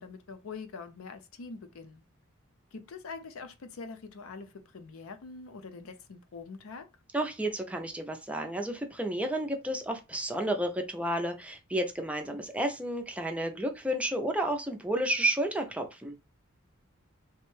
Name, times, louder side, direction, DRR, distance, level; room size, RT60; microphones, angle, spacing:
voice 1, 0.0-2.0 2.7-6.9, left 4 dB, 70° left, 0.5 m, -44 dB
voice 2, 7.1-16.2, right 1 dB, 5° right, 0.4 m, -31 dB
3.2 x 2.1 x 3.1 m
head